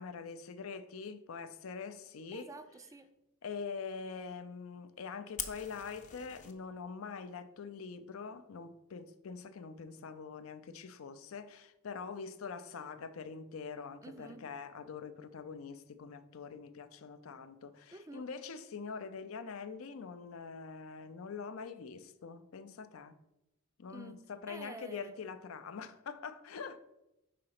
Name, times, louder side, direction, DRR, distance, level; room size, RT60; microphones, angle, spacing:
voice 1, 0.0-2.5 3.4-23.2 23.8-26.8, left 5 dB, 85° left, 0.5 m, -44 dB
voice 2, 2.3-3.2 14.0-14.5 17.9-18.3 23.9-25.3, right 2 dB, 15° right, 0.3 m, -50 dB
Fire, 5.4-6.5, left 7 dB, 35° left, 0.6 m, -43 dB
5.0 x 3.8 x 5.8 m
head